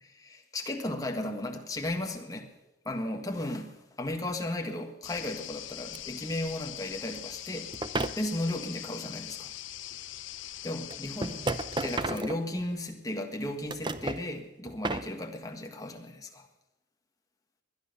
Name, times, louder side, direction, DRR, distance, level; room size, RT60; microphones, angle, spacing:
voice 1, 0.2-2.5 2.8-7.7 8.1-9.5 10.6-11.4 11.8-16.5, left 1 dB, 20° left, 3 dB, 1.5 m, -35 dB
sound 1, 5.0-12.0, left 13 dB, 75° left, 0.6 m, -42 dB
sound 2, 5.9-6.0 7.7-8.2 9.9-10.0 10.9-12.9 13.4-14.2 14.7-15.1, right 2 dB, 25° right, 0.6 m, -33 dB
21.0 x 10.5 x 6.7 m, 0.96 s
head